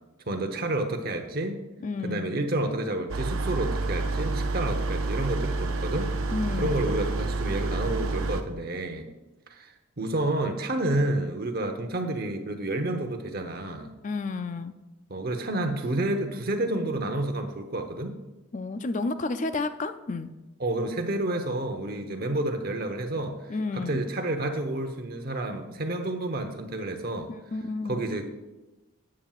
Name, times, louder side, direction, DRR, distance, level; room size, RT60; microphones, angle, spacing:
voice 1, 0.3-1.6 2.0-6.1 6.6-9.1 9.5-13.9 15.1-18.2 20.6-23.4 23.7-27.3 27.8-28.3, right 1 dB, 45° right, 6 dB, 0.9 m, -30 dB
voice 2, 1.8-2.4 6.3-6.9 14.0-14.7 18.5-20.3 23.5-24.0 27.3-28.0, left 3 dB, 35° left, 11 dB, 0.4 m, -31 dB
sound 1, 3.1-8.4, right 3 dB, 65° right, 0.7 m, -29 dB
13.0 x 8.7 x 2.4 m, 1.1 s
head